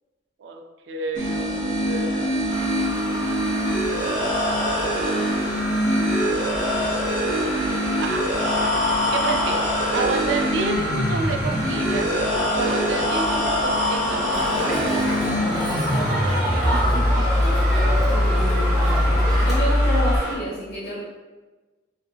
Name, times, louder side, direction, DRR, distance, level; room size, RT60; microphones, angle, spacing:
voice 1, 0.4-2.7 5.0-5.3 8.0-8.3 9.1-12.1 12.5-14.8 16.5-17.3, right 4 dB, 70° right, 3 dB, 0.3 m, -30 dB
sound 1, 1.1-20.2, equal, 40° right, 0.9 m, -23 dB
sound 2, 2.5-20.3, equal, 25° right, 1.3 m, -31 dB
Crowd, 14.3-19.6, equal, ahead, 0.8 m, -27 dB
voice 2, 18.1-19.2 19.4-21.0, equal, 60° left, -8 dB, 1.2 m, -29 dB
2.9 x 2.6 x 2.3 m, 1.2 s
head